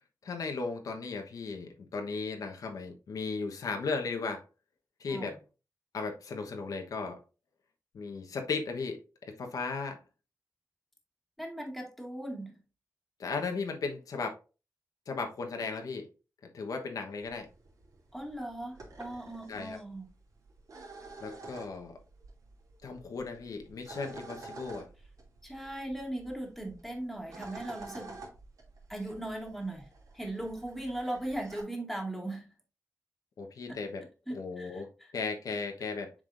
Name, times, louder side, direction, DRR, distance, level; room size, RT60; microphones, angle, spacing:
voice 1, 0.2-4.4 5.0-5.3 5.9-7.2 7.9-10.0 13.2-14.3 15.1-16.1 16.5-17.5 19.5-19.8 21.2-22.0 22.8-24.8 33.4-34.0 34.3-36.1, left 4 dB, 85° left, 1.1 m, -36 dB
voice 2, 11.4-12.6 18.1-20.1 25.4-28.2 28.9-29.9 30.1-32.5 34.3-35.1, right 1 dB, ahead, 2.0 m, -38 dB
sound 1, 17.2-31.6, right 3 dB, 80° right, 2.8 m, -50 dB
7.4 x 4.9 x 2.6 m
wide cardioid pair, 135°, 6 cm